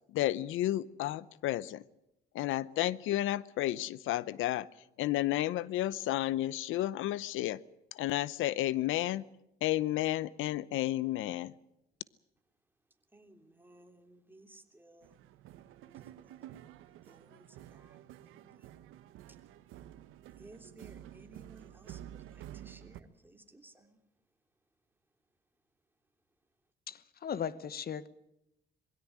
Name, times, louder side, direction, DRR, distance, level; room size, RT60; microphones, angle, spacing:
voice 1, 0.1-1.8 2.3-4.7 5.0-7.6 7.9-9.2 9.6-11.5, left 14 dB, 75° left, 20 dB, 0.8 m, -32 dB
voice 2, 13.1-15.6 15.8-18.9 19.3-19.4 20.3-24.0, right 2 dB, 10° right, 4 dB, 3.3 m, -59 dB
sound 1, 15.0-23.0, right 12 dB, 80° right, 1.3 m, -51 dB
voice 3, 26.9-28.1, left 8 dB, 50° left, 17 dB, 1.2 m, -37 dB
22.0 x 16.5 x 9.8 m, 0.86 s
supercardioid pair, 80°, 21 cm